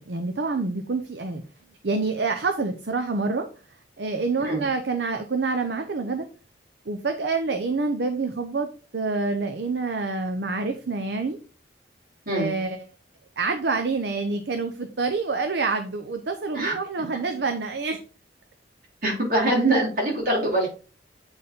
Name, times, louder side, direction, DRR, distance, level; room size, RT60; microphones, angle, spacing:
voice 1, 0.0-1.4 1.8-3.5 4.0-6.3 6.9-11.4 12.3-12.8 13.4-18.0, right 3 dB, 70° right, 6 dB, 0.7 m, -27 dB
voice 2, 19.0-20.8, right 1 dB, 55° right, -5 dB, 3.9 m, -23 dB
8.1 x 4.4 x 3.7 m, 0.37 s
head